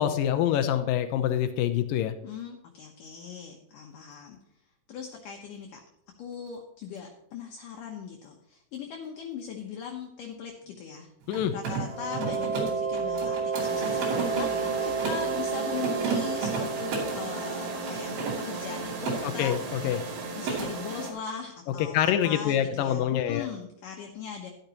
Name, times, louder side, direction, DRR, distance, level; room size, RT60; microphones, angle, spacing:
voice 1, 0.0-2.2 11.3-11.5 19.2-20.0 21.8-23.5, left 10 dB, 85° left, 10 dB, 2.0 m, -26 dB
voice 2, 2.2-4.4 4.9-5.8 6.2-11.1 11.5-19.6 20.3-24.5, left 7 dB, 70° left, 2 dB, 2.3 m, -39 dB
Mechanisms, 11.2-15.3 15.7-17.2 17.8-19.2 19.5-19.9 20.1-20.7, right 5 dB, 85° right, 4.9 m, -33 dB
sound 1, 11.8-18.5, right 5 dB, 10° right, 1.9 m, -31 dB
sound 2, 13.6-21.1, right 3 dB, 70° right, 3.9 m, -36 dB
12.0 x 12.0 x 3.0 m, 0.81 s
omnidirectional pair, 4.7 m